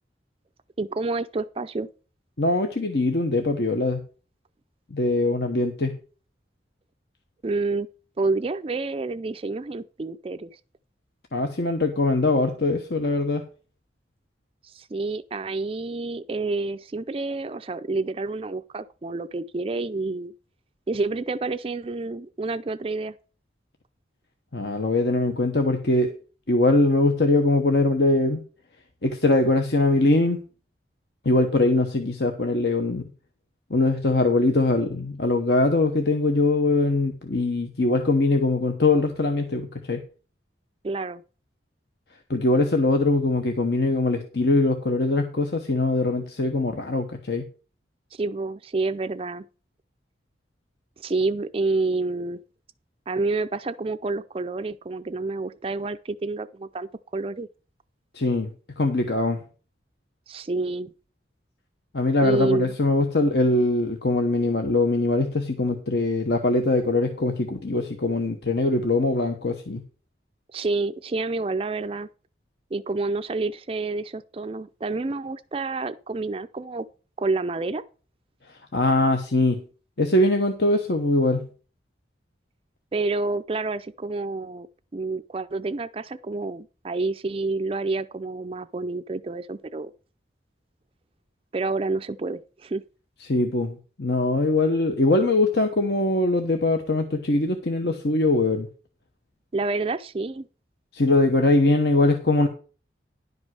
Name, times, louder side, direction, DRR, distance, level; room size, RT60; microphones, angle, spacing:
voice 1, 0.8-1.9 7.4-7.9 8.2-10.5 14.6-20.3 20.9-23.1 40.8-41.2 48.1-49.4 51.0-52.4 53.1-57.5 60.3-60.9 62.2-62.7 70.5-72.1 72.7-76.9 77.2-77.8 82.9-84.7 84.9-89.9 91.5-92.8 99.5-100.5, right 3 dB, 30° right, 0.4 m, -28 dB
voice 2, 2.4-4.0 4.9-6.0 11.3-13.4 24.5-26.1 26.5-28.4 29.0-30.4 31.2-33.0 33.7-40.0 42.3-47.5 58.1-58.5 58.8-59.4 61.9-69.8 78.5-79.6 80.0-81.5 93.2-98.7 100.9-102.5, left 2 dB, 65° left, 1.0 m, -22 dB
11.0 x 5.3 x 6.1 m
head